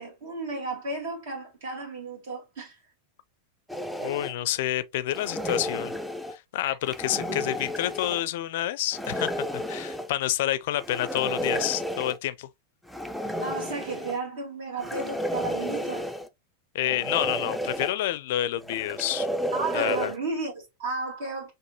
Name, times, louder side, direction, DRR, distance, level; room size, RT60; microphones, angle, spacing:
voice 1, 0.0-2.8 6.6-6.8 13.4-16.1 19.5-21.5, right 3 dB, 55° right, 1.8 m, -33 dB
sound 1, 3.7-4.3 5.1-6.4 6.8-8.2 8.9-10.1 10.8-12.2 12.9-14.2 14.8-16.3 16.8-17.9 18.6-20.2, equal, ahead, 0.5 m, -32 dB
voice 2, 4.0-5.9 6.3-12.5 16.7-19.3 19.7-20.1, left 13 dB, 55° left, 0.5 m, -28 dB
6.1 x 2.6 x 2.9 m
figure-of-eight pair, 90°, 0 cm